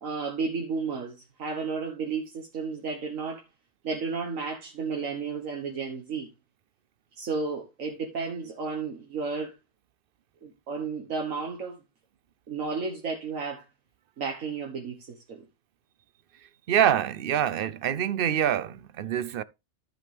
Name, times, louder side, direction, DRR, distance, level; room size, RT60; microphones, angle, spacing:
voice 1, 0.0-3.4 3.8-6.3 7.1-9.5 10.4-11.8 12.5-13.6 14.2-15.4, right 4 dB, 85° right, 1.7 m, -32 dB
voice 2, 16.7-19.4, right 10 dB, 55° right, 0.7 m, -25 dB
14.0 x 5.1 x 3.3 m
omnidirectional pair, 1.3 m